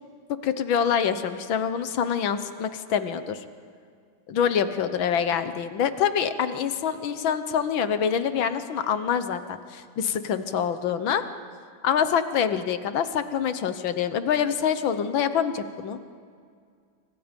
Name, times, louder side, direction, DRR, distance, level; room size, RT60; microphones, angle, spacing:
voice 1, 0.4-3.4 4.3-11.2 11.8-16.0, left 8 dB, 75° left, 11 dB, 1.8 m, -25 dB
28.0 x 24.5 x 5.3 m, 2.1 s
omnidirectional pair, 2.2 m